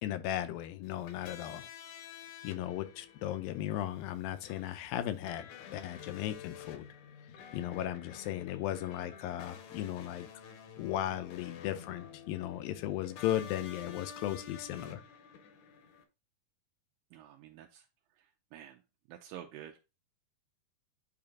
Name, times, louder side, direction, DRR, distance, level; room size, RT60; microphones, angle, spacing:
voice 1, 0.0-1.7 2.4-6.9 7.5-10.3 10.8-15.0, left 12 dB, 90° left, 2.4 m, -36 dB
sound 1, 0.8-16.0, left 8 dB, 70° left, 1.8 m, -50 dB
voice 2, 17.1-17.9 18.5-18.8 19.1-19.8, right 11 dB, 85° right, 2.3 m, -49 dB
8.6 x 3.0 x 3.7 m
omnidirectional pair, 4.1 m